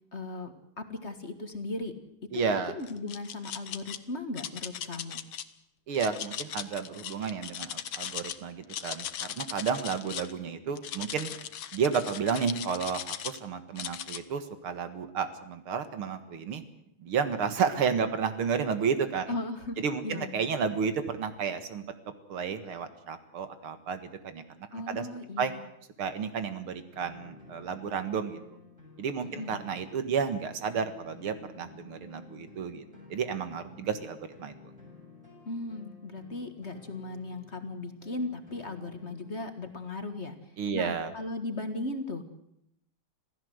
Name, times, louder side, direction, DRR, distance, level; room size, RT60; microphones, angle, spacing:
voice 1, 0.1-2.0 2.2-5.2 19.3-19.8 20.0-20.3 24.7-25.6 29.2-29.6 35.5-40.4 40.7-42.2, left 2 dB, 35° left, 8 dB, 1.8 m, -37 dB
voice 2, 2.3-2.7 5.9-11.3 11.7-16.6 17.0-19.3 19.8-24.4 24.9-25.1 25.4-25.5 26.0-28.6 29.0-32.8 33.1-34.5 40.6-41.1, right 6 dB, 85° right, 10 dB, 2.5 m, -32 dB
sound 1, 2.8-4.0 4.4-5.4 5.9-8.4 8.6-10.3 10.8-13.4 13.8-14.2, left 10 dB, 70° left, 1.8 m, -38 dB
sound 2, 26.9-39.4, left 4 dB, 15° right, 6.9 m, -52 dB
26.5 x 16.0 x 8.0 m, 0.76 s
omnidirectional pair, 2.3 m